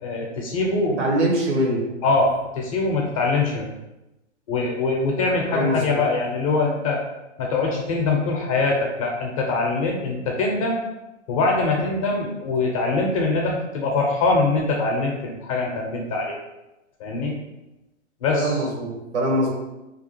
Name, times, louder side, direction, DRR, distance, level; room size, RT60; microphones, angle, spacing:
voice 1, 0.0-1.0 2.0-3.7 4.5-7.0 7.4-10.8 11.3-16.4 17.0-17.3 18.2-18.6, left 3 dB, 30° left, -1 dB, 0.5 m, -23 dB
voice 2, 1.0-1.9 5.5-6.0 18.3-19.5, equal, 65° right, -2 dB, 1.3 m, -23 dB
2.9 x 2.4 x 4.2 m, 0.99 s
hypercardioid pair, 145°, 37 cm